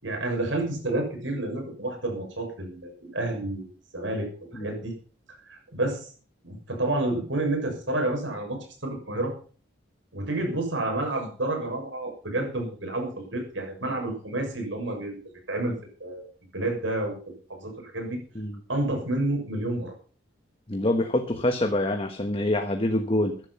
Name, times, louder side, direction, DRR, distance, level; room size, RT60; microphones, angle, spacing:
voice 1, 0.0-3.7 3.9-4.3 4.6-4.9 5.5-6.1 6.4-9.3 10.1-15.2 15.5-16.2 16.5-17.1 17.5-18.2 18.7-19.9, right 2 dB, 75° right, 2 dB, 6.8 m, -29 dB
voice 2, 20.7-23.4, left 1 dB, 30° left, 6 dB, 1.3 m, -25 dB
14.5 x 11.0 x 5.7 m, 0.43 s
head